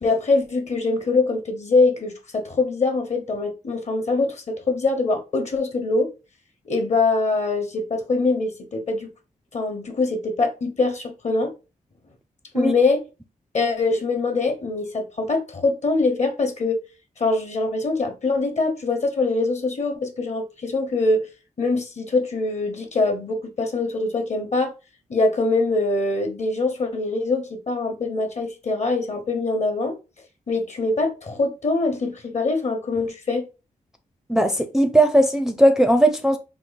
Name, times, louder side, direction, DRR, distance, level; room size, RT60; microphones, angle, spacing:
voice 1, 0.0-6.1 6.6-9.1 9.5-11.5 12.5-13.0 13.5-16.8 17.2-21.3 21.6-24.7 25.1-29.9 30.5-33.4, left 3 dB, 50° left, 1.0 m, -23 dB
voice 2, 34.3-36.4, right 1 dB, 5° right, 0.4 m, -18 dB
3.7 x 2.3 x 3.9 m
cardioid pair, 70°, 15 cm